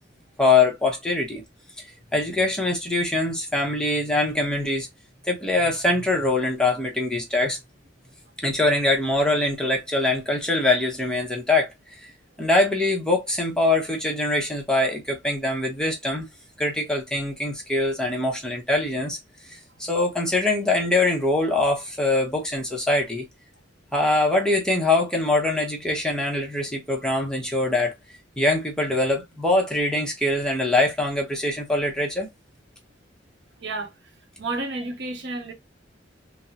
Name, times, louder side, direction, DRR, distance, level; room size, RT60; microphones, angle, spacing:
voice 1, 0.4-1.4 2.1-4.9 5.3-7.6 8.4-11.7 12.4-16.3 16.6-19.2 19.8-23.3 23.9-27.9 28.4-32.3, left 2 dB, 5° left, 0.7 m, -23 dB
voice 2, 33.6-33.9 34.4-35.5, right 2 dB, 65° right, 0.7 m, -31 dB
3.5 x 2.0 x 2.7 m
head